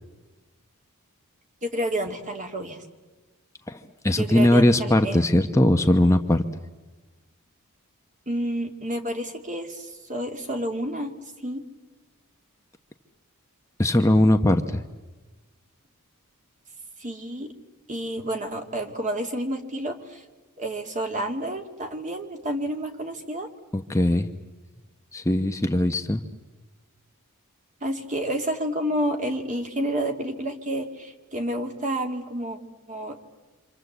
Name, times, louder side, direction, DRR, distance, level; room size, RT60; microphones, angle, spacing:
voice 1, 1.6-2.9 4.1-5.2 8.3-11.1 11.4-11.6 17.0-17.5 17.9-20.2 20.6-23.5 27.8-32.6 32.9-33.2, right 1 dB, 35° right, 4 dB, 2.5 m, -30 dB
voice 2, 4.0-6.4 13.8-14.8 23.7-24.3 25.1-26.2, left 1 dB, 15° left, 5 dB, 0.9 m, -20 dB
28.0 x 26.5 x 8.1 m, 1.2 s
head